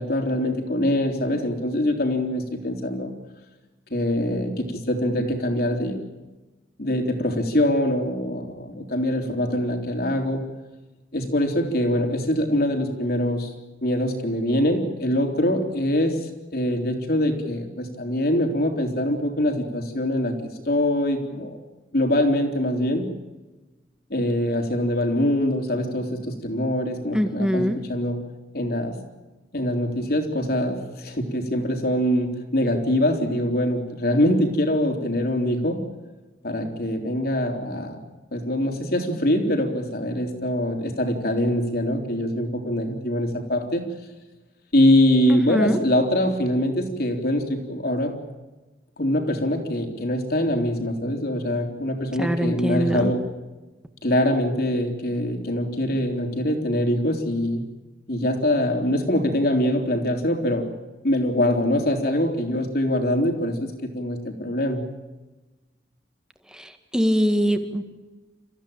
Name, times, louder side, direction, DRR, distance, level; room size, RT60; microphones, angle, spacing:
voice 1, 0.0-3.1 3.9-6.0 6.8-10.4 11.1-13.5 13.8-20.3 20.7-21.6 21.9-23.1 24.1-28.2 28.5-29.0 29.5-35.8 36.4-38.0 38.3-43.8 44.7-48.1 49.0-53.2 54.0-57.6 58.1-60.7 61.0-64.8, left 1 dB, 60° left, 4 dB, 3.7 m, -23 dB
voice 2, 27.1-27.8 45.3-45.8 52.2-53.1 66.9-67.8, equal, 5° right, 7 dB, 1.9 m, -22 dB
29.0 x 15.0 x 8.9 m, 1.2 s
head